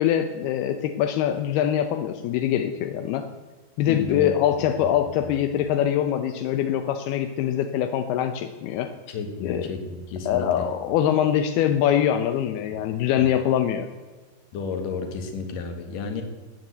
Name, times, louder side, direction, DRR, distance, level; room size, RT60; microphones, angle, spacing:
voice 1, 0.0-3.3 3.8-8.9 9.4-9.6 10.3-13.9, left 10 dB, 85° left, 8 dB, 2.7 m, -23 dB
voice 2, 3.9-4.6 5.3-5.4 9.1-10.7 13.2-13.3 14.5-16.2, left 5 dB, 60° left, 6 dB, 3.3 m, -32 dB
16.5 x 9.2 x 8.0 m, 1.4 s
omnidirectional pair, 4.5 m